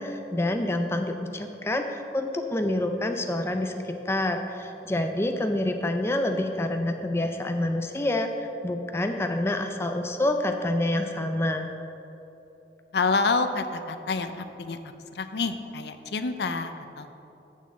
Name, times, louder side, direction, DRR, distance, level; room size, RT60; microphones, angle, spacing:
voice 1, 0.0-11.7, left 1 dB, 15° left, 5 dB, 0.4 m, -27 dB
voice 2, 12.9-14.8 15.1-17.1, left 4 dB, 70° left, 9 dB, 0.5 m, -28 dB
6.9 x 6.5 x 7.6 m, 3.0 s
head